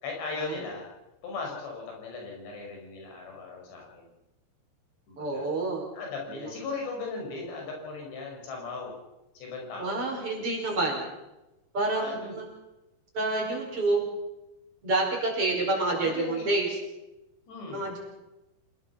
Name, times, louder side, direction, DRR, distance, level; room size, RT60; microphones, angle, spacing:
voice 1, 0.0-0.9 1.2-4.1 5.1-5.5 5.9-8.9 9.4-10.0 12.0-12.3 15.8-16.5 17.5-17.9, left 3 dB, 85° left, 0 dB, 7.7 m, -37 dB
voice 2, 5.2-5.8 6.3-6.5 9.8-11.1 11.7-12.0 12.3-12.5 13.1-14.1 14.8-16.7 17.7-18.0, right 2 dB, 35° right, -1 dB, 5.7 m, -28 dB
27.5 x 19.5 x 5.9 m, 1.0 s
omnidirectional pair, 4.8 m